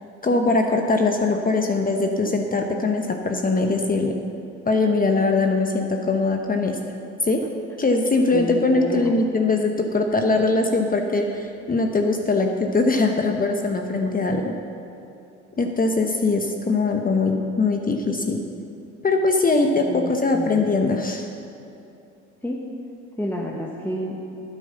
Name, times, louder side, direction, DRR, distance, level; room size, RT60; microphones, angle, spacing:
voice 1, 0.2-4.1 4.7-6.8 7.2-7.4 7.8-14.5 15.6-18.4 19.0-21.3, left 3 dB, 25° left, 3 dB, 1.0 m, -21 dB
voice 2, 8.3-9.1 19.8-20.6 22.4-22.6 23.2-24.2, left 1 dB, 5° left, -2 dB, 1.4 m, -30 dB
9.6 x 8.8 x 6.8 m, 2.7 s
supercardioid pair, 70°, 31 cm